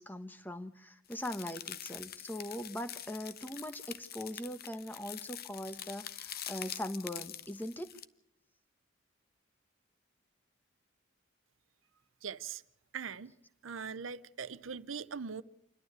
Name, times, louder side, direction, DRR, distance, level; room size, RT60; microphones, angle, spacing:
voice 1, 0.0-7.9, left 1 dB, 10° left, 1.2 m, -41 dB
ice grinding cracking freezing designed, 1.1-8.1, left 11 dB, 50° left, 0.8 m, -45 dB
voice 2, 12.2-12.6 12.9-13.3 13.6-15.4, right 6 dB, 90° right, 0.8 m, -41 dB
28.0 x 12.0 x 8.1 m
head